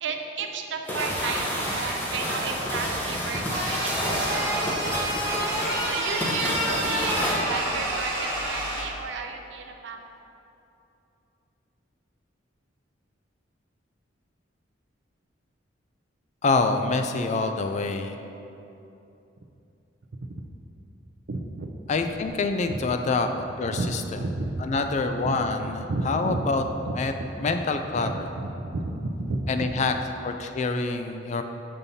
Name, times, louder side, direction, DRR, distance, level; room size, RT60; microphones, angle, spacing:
voice 1, 0.0-4.5 5.8-7.2 7.5-10.0 21.3-21.7 22.7-22.8 23.7-23.9 24.2-24.5 25.2-25.3 25.9-26.4 26.8-26.9 27.2-27.3 28.0-29.4, right 4 dB, 65° right, 3 dB, 0.5 m, -32 dB
sound 1, 0.9-7.4, equal, 10° left, 0.7 m, -29 dB
sound 2, 3.5-8.8, right 1 dB, 15° right, 1.3 m, -29 dB
voice 2, 16.4-18.2 21.9-24.2 24.6-26.6 27.0-27.1 27.4-28.3 29.5-29.9 30.2-31.4, left 3 dB, 40° left, 7 dB, 0.3 m, -26 dB
7.1 x 5.3 x 2.7 m, 2.8 s
head